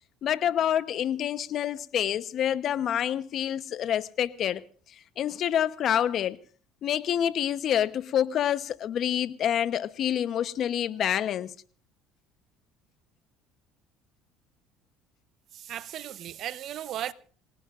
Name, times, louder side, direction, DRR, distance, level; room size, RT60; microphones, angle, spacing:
voice 1, 0.2-4.6 5.2-6.4 6.8-11.5, left 10 dB, 50° left, 1.0 m, -27 dB
voice 2, 15.5-17.1, right 11 dB, 55° right, 0.9 m, -36 dB
27.5 x 17.5 x 2.5 m
supercardioid pair, 95°, 0 cm